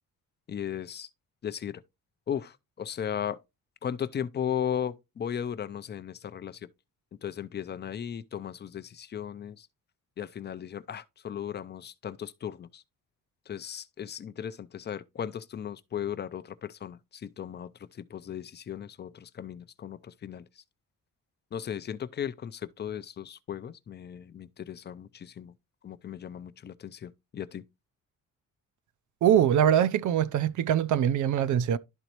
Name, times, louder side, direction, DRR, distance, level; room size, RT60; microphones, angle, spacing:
voice 1, 0.5-1.1 1.4-1.8 2.3-3.4 3.8-6.6 7.2-9.7 10.2-12.8 13.5-20.4 21.5-25.5 25.8-27.6, left 9 dB, 30° left, 0.5 m, -36 dB
voice 2, 29.2-31.8, right 9 dB, 60° right, 0.6 m, -23 dB
12.0 x 4.0 x 3.0 m
cardioid pair, 140°, 33 cm